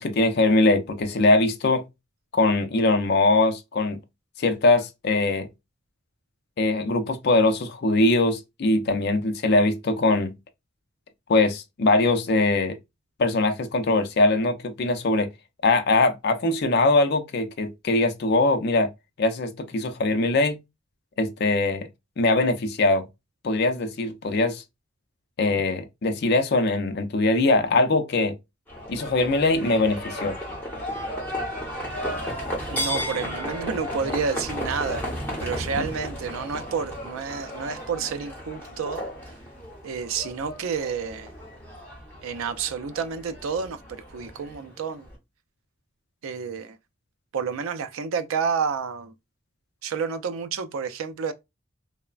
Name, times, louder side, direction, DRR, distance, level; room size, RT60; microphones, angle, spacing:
voice 1, 0.0-1.8 2.3-4.0 4.4-5.5 6.6-10.3 11.3-12.8 13.2-15.3 15.6-18.9 19.2-20.6 21.2-21.9 22.2-23.0 23.4-24.6 25.4-28.3 28.9-30.4, left 2 dB, 50° left, 0.4 m, -22 dB
Livestock farm animals working animals, 28.7-45.1, equal, 10° left, 0.9 m, -34 dB
voice 2, 32.7-35.0 35.4-39.0 39.8-41.3 42.2-45.1 46.2-46.8 47.3-49.1 49.8-51.3, right 6 dB, 85° right, 0.4 m, -30 dB
3.1 x 2.1 x 2.3 m
head